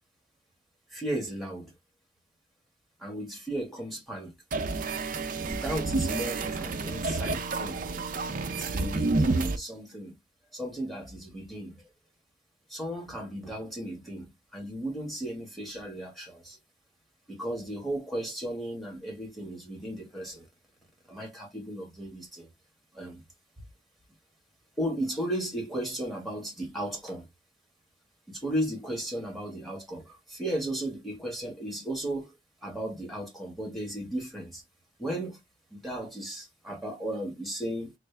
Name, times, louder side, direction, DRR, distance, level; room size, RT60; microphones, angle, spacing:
voice 1, 0.9-1.7 3.0-4.4 5.4-7.8 8.5-10.1 10.5-11.8 12.7-16.6 17.3-20.5 21.1-22.5 22.9-23.2 24.8-27.3 28.3-34.6 35.0-35.4 35.7-37.9, right 1 dB, ahead, 1.5 m, -35 dB
sound 1, 4.5-9.6, right 3 dB, 50° right, 0.5 m, -29 dB
3.3 x 2.5 x 3.3 m
head